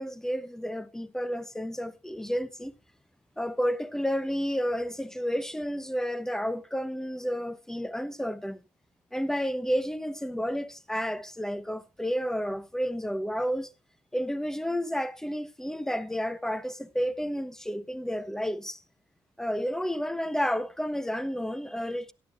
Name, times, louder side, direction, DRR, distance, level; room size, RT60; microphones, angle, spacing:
voice 1, 0.0-2.7 3.4-8.6 9.1-13.7 14.1-18.8 19.4-22.1, equal, 5° left, 1.0 m, -31 dB
17.0 x 11.5 x 2.5 m
cardioid pair, 75°, 10 cm